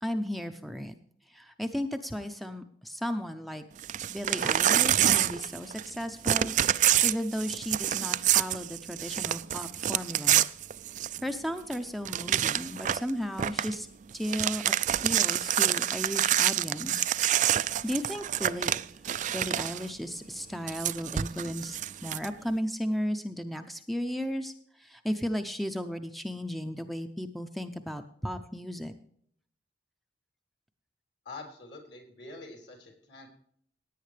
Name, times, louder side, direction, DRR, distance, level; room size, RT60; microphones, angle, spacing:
voice 1, 0.0-0.9 1.3-3.6 4.1-10.5 11.2-13.9 14.1-14.6 15.0-17.1 17.4-18.8 19.3-21.8 22.0-28.9, equal, ahead, 8 dB, 0.6 m, -35 dB
Crumpling crinkling / Tearing, 3.8-6.0 6.2-11.3 11.7-11.8 12.0-13.1 13.4-13.7 14.1-19.9 20.7-22.3, right 11 dB, 45° right, 0.4 m, -27 dB
voice 2, 31.3-33.3, left 3 dB, 65° left, 2 dB, 3.6 m, -45 dB
17.0 x 9.3 x 3.3 m, 0.64 s
head